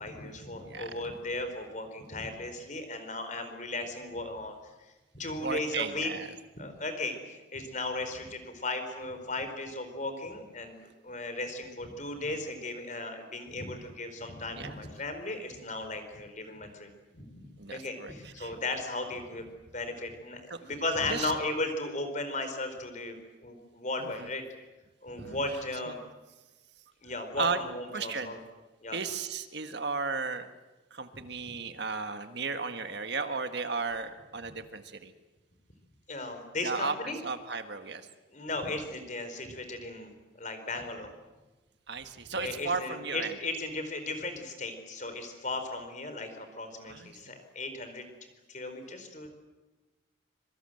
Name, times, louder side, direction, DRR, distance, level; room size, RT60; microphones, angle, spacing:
voice 1, 0.0-4.5 5.1-6.1 6.6-10.8 11.0-19.4 19.7-23.2 23.4-24.4 25.0-26.0 27.0-28.4 28.8-29.0 34.4-34.5 36.1-37.2 38.3-40.1 40.4-41.1 42.4-48.0 48.5-49.3, left 2 dB, 40° left, 7 dB, 4.3 m, -36 dB
voice 2, 5.4-6.3 14.5-14.8 17.6-18.1 18.4-18.5 20.5-20.6 21.1-21.3 24.0-24.1 25.1-25.4 27.4-27.6 27.9-28.3 28.9-30.5 30.9-35.1 36.6-38.1 41.9-43.3 46.9-47.4, right 4 dB, 55° right, 8 dB, 1.6 m, -34 dB
25.5 x 24.5 x 7.8 m, 1.2 s
head